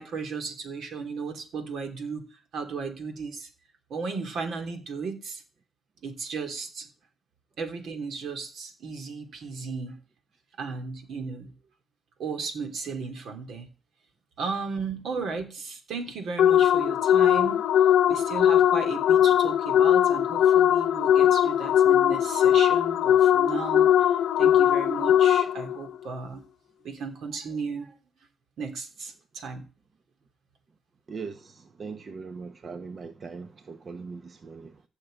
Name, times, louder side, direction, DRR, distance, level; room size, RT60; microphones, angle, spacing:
voice 1, 0.0-2.2 2.5-3.5 3.9-5.4 6.0-6.9 7.6-10.0 10.6-11.5 12.2-13.7 14.4-17.6 18.1-26.4 26.8-27.9 28.6-29.6, right 4 dB, 65° right, 3.2 m, -35 dB
sound 1, 16.4-25.8, left 10 dB, 75° left, 0.9 m, -20 dB
voice 2, 31.1-34.8, right 5 dB, 40° right, 1.2 m, -40 dB
15.0 x 6.6 x 9.2 m
cardioid pair, 90°, 0 cm